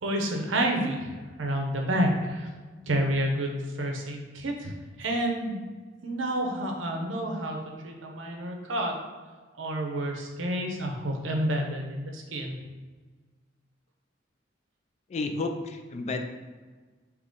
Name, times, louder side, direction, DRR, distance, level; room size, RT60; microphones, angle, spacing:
voice 1, 0.0-2.5 2.9-5.6 6.0-8.9 9.6-12.5, right 1 dB, 85° right, 2 dB, 0.7 m, -29 dB
voice 2, 15.1-16.2, left 3 dB, 35° left, 6 dB, 0.3 m, -31 dB
3.6 x 2.9 x 3.7 m, 1.4 s
head